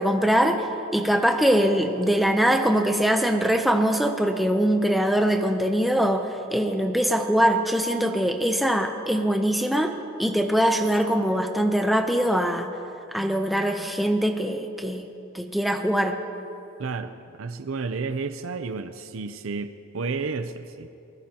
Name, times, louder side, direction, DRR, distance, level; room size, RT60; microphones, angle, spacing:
voice 1, 0.0-12.7 13.1-16.2, equal, ahead, 5 dB, 0.6 m, -23 dB
voice 2, 16.8-17.1 17.4-20.9, right 4 dB, 70° right, 10 dB, 0.6 m, -31 dB
23.5 x 20.0 x 2.9 m, 2.8 s
head